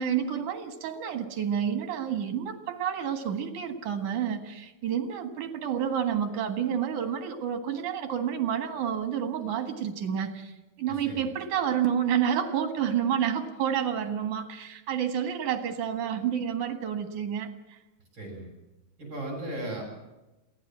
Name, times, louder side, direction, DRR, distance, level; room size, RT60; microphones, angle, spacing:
voice 1, 0.0-17.8, right 8 dB, 85° right, 6 dB, 3.2 m, -29 dB
voice 2, 10.9-11.3 18.1-18.5 19.0-19.8, right 1 dB, 40° right, 1 dB, 7.9 m, -36 dB
22.5 x 16.0 x 7.5 m, 1.0 s
omnidirectional pair, 3.4 m